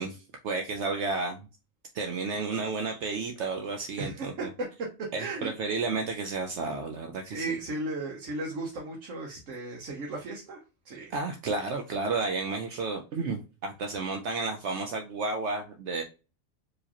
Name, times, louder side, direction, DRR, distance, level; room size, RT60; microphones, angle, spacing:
voice 1, 0.0-1.5 1.9-4.5 5.1-7.6 11.1-16.0, right 3 dB, 70° right, 4 dB, 0.9 m, -32 dB
voice 2, 5.2-5.5 7.2-10.6 10.8-11.1, right 2 dB, 85° right, 0 dB, 1.3 m, -35 dB
4.6 x 3.2 x 2.9 m, 0.31 s
omnidirectional pair, 1.3 m